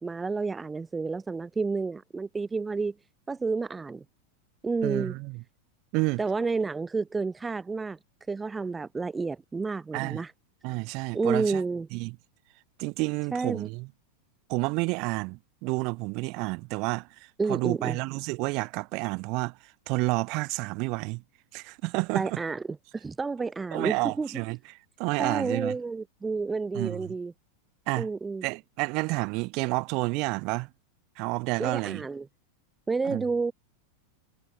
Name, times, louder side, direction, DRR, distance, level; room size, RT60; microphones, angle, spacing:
voice 1, 0.0-2.9 3.3-4.0 4.6-5.1 6.2-8.0 8.3-10.3 11.1-11.9 13.3-13.7 17.4-18.0 22.1-24.3 25.2-27.3 28.0-28.4 31.6-32.3 32.9-33.5, right 4 dB, 10° right, 4.2 m, -30 dB
voice 2, 4.8-5.4 5.9-6.2 9.9-10.2 10.6-11.6 11.9-12.2 12.8-13.9 14.5-21.2 21.5-22.4 23.7-24.6 25.0-25.7 26.7-27.0 27.9-28.1 28.4-30.7 31.2-32.0 33.0-33.2, right 27 dB, 45° right, 6.0 m, -30 dB
figure-of-eight pair, 90°, 0 cm